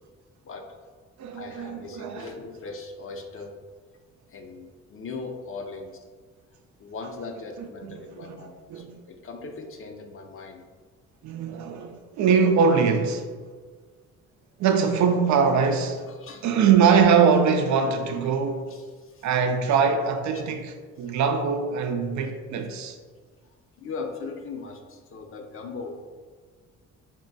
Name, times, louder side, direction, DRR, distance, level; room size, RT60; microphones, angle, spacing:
voice 1, 0.4-0.8 1.3-3.6 4.3-6.0 6.8-10.6 16.1-16.5 18.7-19.3 20.3-20.4 21.0-21.2 23.8-26.1, left 4 dB, 45° left, 0.6 m, -39 dB
voice 2, 1.2-2.3 7.6-7.9 8.2-8.3 8.7-8.9 11.2-13.3 14.6-16.0 16.4-18.7 19.2-23.0, right 6 dB, 70° right, 0.5 m, -22 dB
3.6 x 2.2 x 3.9 m
cardioid pair, 90°, 30 cm